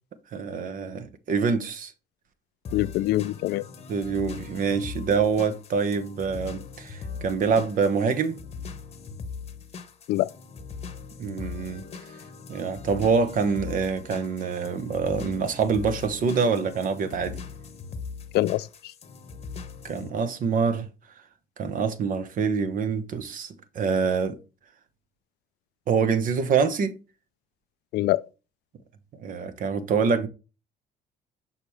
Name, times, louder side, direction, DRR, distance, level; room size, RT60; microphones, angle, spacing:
voice 1, 0.3-1.9 3.9-8.3 11.2-11.8 12.5-17.4 19.8-20.9 21.6-24.4 25.9-26.9 29.2-30.3, right 5 dB, 55° right, 1.0 m, -25 dB
sound 1, 2.6-20.1, left 5 dB, 35° left, 0.9 m, -40 dB
voice 2, 2.7-3.7 10.1-10.3 18.3-18.9 27.9-28.2, left 16 dB, 75° left, 0.4 m, -24 dB
6.7 x 5.7 x 3.1 m
cardioid pair, 110°, 17 cm